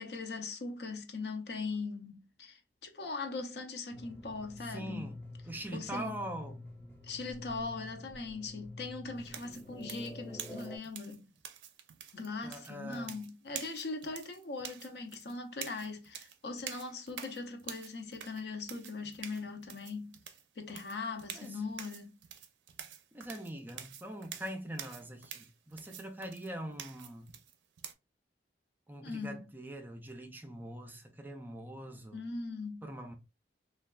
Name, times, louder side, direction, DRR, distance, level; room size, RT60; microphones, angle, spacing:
voice 1, 0.0-5.1 5.7-6.2 7.0-11.2 12.1-20.2 20.6-22.2 29.0-29.4 32.1-32.9, left 3 dB, 65° left, 0.5 m, -40 dB
sound 1, 3.9-10.8, left 2 dB, 15° left, 0.7 m, -48 dB
voice 2, 4.7-5.2 5.4-6.6 12.4-13.1 21.3-21.6 23.1-27.3 28.9-32.2 32.8-33.1, right 1 dB, 10° right, 0.3 m, -43 dB
sound 2, 9.3-27.9, right 9 dB, 85° right, 0.4 m, -47 dB
3.3 x 2.3 x 2.2 m
head